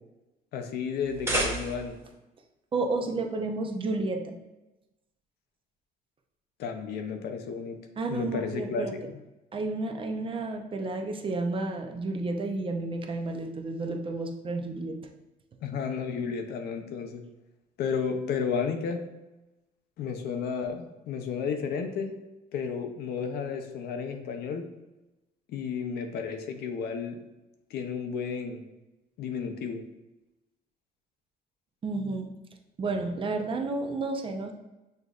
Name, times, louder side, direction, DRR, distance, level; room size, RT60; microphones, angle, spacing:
voice 1, 0.5-2.0 6.6-7.8 8.1-9.2 15.6-17.2 17.8-19.0 20.0-22.1 22.5-24.7 25.5-27.2 27.7-28.6 29.2-29.8, left 6 dB, 70° left, 5 dB, 0.6 m, -32 dB
sound 1, 1.0-2.1, right 1 dB, 15° right, 0.9 m, -31 dB
voice 2, 2.7-4.4 8.0-8.9 9.5-15.0 31.8-32.3 32.8-34.5, right 3 dB, 30° right, 4 dB, 0.5 m, -31 dB
6.4 x 2.6 x 2.4 m, 1.0 s
cardioid pair, 110°, 17 cm